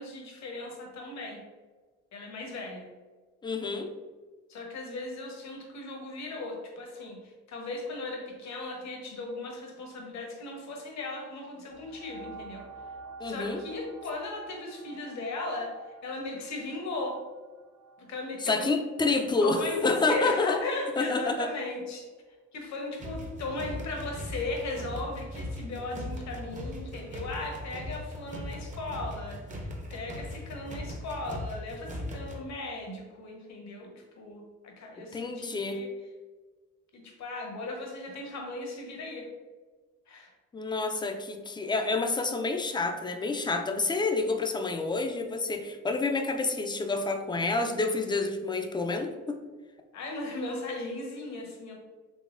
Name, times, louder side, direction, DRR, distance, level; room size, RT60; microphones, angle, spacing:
voice 1, 0.0-1.4 2.1-2.9 4.5-12.7 13.2-15.7 16.0-17.2 18.0-18.7 19.4-22.0 22.5-33.9 34.2-35.9 37.0-39.3 40.1-40.3 49.9-51.8, left 2 dB, 65° left, 1 dB, 1.0 m, -37 dB
voice 2, 3.4-3.9 13.2-13.6 18.4-20.6 21.0-21.5 35.1-35.8 40.5-49.4, left 3 dB, 15° left, 5 dB, 0.4 m, -28 dB
sound 1, 11.7-21.0 21.6-21.7, right 4 dB, 65° right, 0.6 m, -49 dB
sound 2, 23.0-32.4, left 1 dB, 25° right, 0.6 m, -39 dB
4.0 x 3.0 x 2.4 m, 1.3 s
cardioid pair, 90°, 30 cm